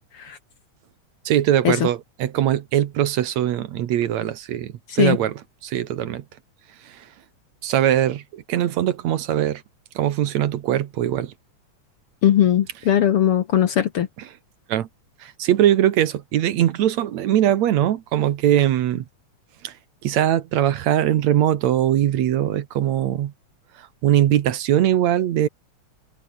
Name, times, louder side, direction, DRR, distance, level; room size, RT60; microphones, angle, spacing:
voice 1, 1.3-5.3 5.6-6.2 6.8-7.1 7.6-9.6 10.0-11.3 14.7-14.9 15.2-19.1 19.6-19.7 20.0-23.3 23.8-25.5, right 11 dB, 70° right, 2.4 m, -21 dB
voice 2, 12.2-14.1, left 10 dB, 60° left, 1.7 m, -19 dB
omnidirectional pair, 3.5 m